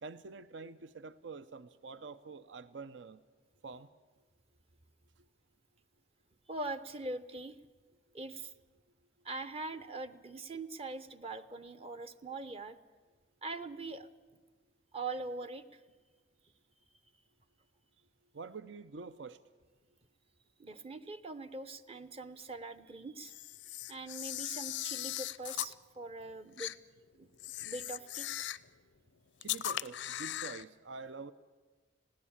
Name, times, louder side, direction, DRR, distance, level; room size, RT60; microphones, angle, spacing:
voice 1, 0.0-3.2 3.6-3.9 18.3-19.4 29.4-31.3, right 4 dB, 75° right, 0.6 m, -46 dB
voice 2, 6.5-7.6 8.1-8.5 9.2-12.8 13.4-14.1 14.9-15.8 20.6-23.4 23.9-26.7 27.2-27.3 27.6-28.3, right 3 dB, 35° right, 0.7 m, -42 dB
Camera, 23.2-25.7 26.6-26.8 27.4-28.7 29.4-30.6, left 13 dB, 80° left, 0.5 m, -39 dB
20.0 x 16.5 x 8.7 m
head